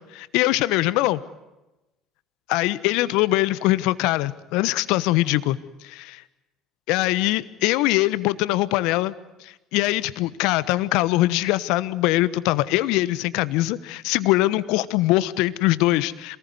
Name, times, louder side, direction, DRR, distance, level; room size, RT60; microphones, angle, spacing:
voice 1, 0.1-1.2 2.5-5.6 5.8-6.2 6.9-9.1 9.4-16.4, left 17 dB, 70° left, 17 dB, 1.1 m, -22 dB
27.0 x 19.5 x 9.5 m, 1.0 s
hypercardioid pair, 60°, 0 cm